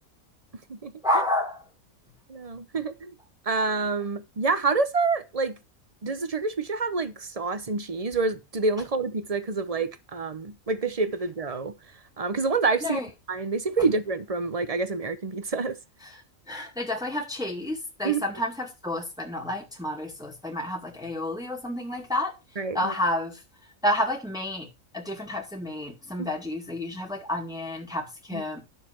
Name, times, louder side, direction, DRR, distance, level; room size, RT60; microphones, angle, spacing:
voice 1, 1.0-1.6 12.8-13.1 16.0-16.2 16.5-22.3 22.7-23.4 23.8-24.7 24.9-28.6, left 1 dB, 5° right, 2.1 m, -30 dB
voice 2, 2.3-3.1 3.5-5.5 6.0-11.7 12.2-13.0 13.3-15.8 18.0-18.2 22.6-22.9 26.2-26.3 28.3-28.4, right 4 dB, 30° right, 0.8 m, -27 dB
11.0 x 6.7 x 4.5 m
omnidirectional pair, 1.5 m